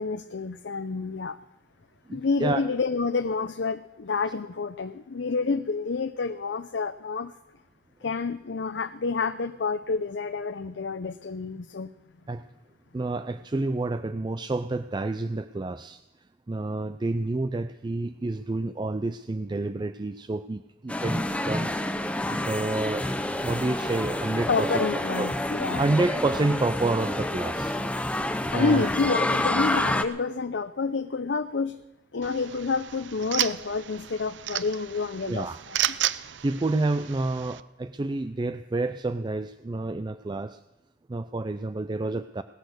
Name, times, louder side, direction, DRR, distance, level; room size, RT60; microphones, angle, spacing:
voice 1, 0.0-1.4 2.1-7.3 8.0-11.9 24.5-25.8 28.5-31.8 32.1-35.8, left 4 dB, 75° left, 10 dB, 0.6 m, -29 dB
voice 2, 2.1-2.6 12.3-12.4 12.9-16.0 16.5-21.7 22.3-23.1 23.4-24.8 25.2-25.3 25.8-27.8 28.5-28.9 35.3-35.6 36.4-40.6 41.1-42.4, right 2 dB, 25° right, 11 dB, 0.4 m, -29 dB
sound 1, 20.9-30.0, left 1 dB, 5° left, 0.7 m, -28 dB
sound 2, 32.2-37.6, right 12 dB, 80° right, 0.5 m, -33 dB
18.5 x 10.5 x 6.6 m, 0.99 s
head